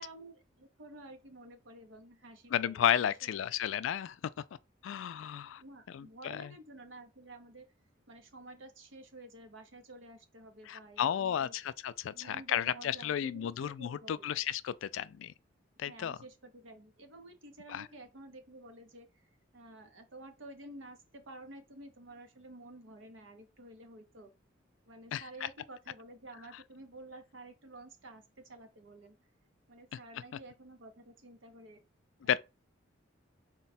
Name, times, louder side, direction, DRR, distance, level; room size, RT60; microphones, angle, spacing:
voice 1, 0.0-3.3 5.6-7.7 8.1-11.5 12.1-14.3 15.8-19.3 19.5-24.3 24.9-29.2 29.7-31.8 32.2-32.4, right 1 dB, 80° right, 0.8 m, -51 dB
voice 2, 2.5-4.2 4.8-5.6 5.9-6.5 10.7-15.3 15.8-16.2 17.7-17.9 25.1-25.5 32.2-32.4, left 10 dB, 85° left, 0.3 m, -33 dB
4.0 x 2.3 x 4.1 m
head